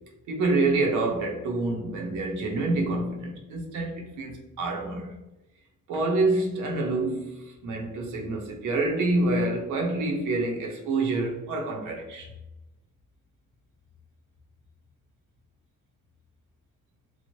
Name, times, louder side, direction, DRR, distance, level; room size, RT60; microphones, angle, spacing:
voice 1, 0.3-5.1 5.9-12.3, right 2 dB, 90° right, 0.8 m, -27 dB
3.0 x 2.1 x 2.9 m
cardioid pair, 90°, 30 cm